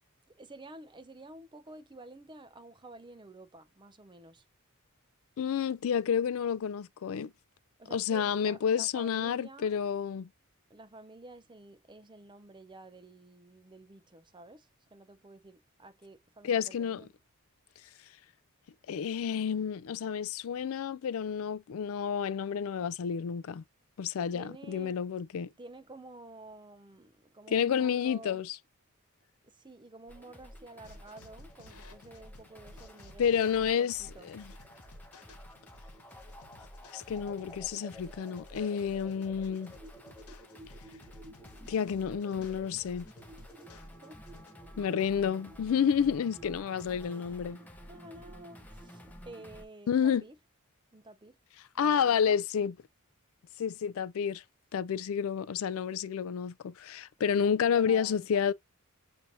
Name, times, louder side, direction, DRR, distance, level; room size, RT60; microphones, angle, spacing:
voice 1, 0.3-4.5 7.8-9.8 10.7-17.1 24.3-25.0 25.6-28.4 29.4-34.3 43.2-44.2 47.0-47.6 47.9-50.4 50.9-51.4 51.8-52.4 57.2-58.5, right 2 dB, 20° right, 0.6 m, -51 dB
voice 2, 5.4-7.3 7.9-10.3 16.4-17.0 18.9-23.6 24.0-25.5 27.5-28.6 33.2-34.4 36.9-39.7 41.7-43.1 44.8-47.6 49.9-50.2 51.8-52.7 53.6-54.4 54.7-58.5, left 7 dB, 65° left, 0.4 m, -30 dB
sound 1, 30.1-49.6, equal, 5° left, 0.8 m, -50 dB
sound 2, 30.8-44.5, left 3 dB, 80° left, 1.1 m, -58 dB
6.9 x 2.7 x 2.7 m
head